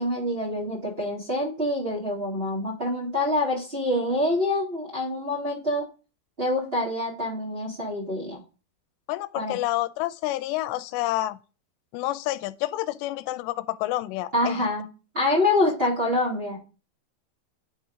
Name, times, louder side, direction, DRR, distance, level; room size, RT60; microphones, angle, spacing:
voice 1, 0.0-5.8 6.4-8.4 9.3-9.6 14.3-14.8 15.1-16.6, left 1 dB, 50° right, 0.7 m, -26 dB
voice 2, 9.1-11.4 11.9-14.6, left 16 dB, 85° left, 2.7 m, -29 dB
10.5 x 4.1 x 5.0 m
omnidirectional pair, 4.9 m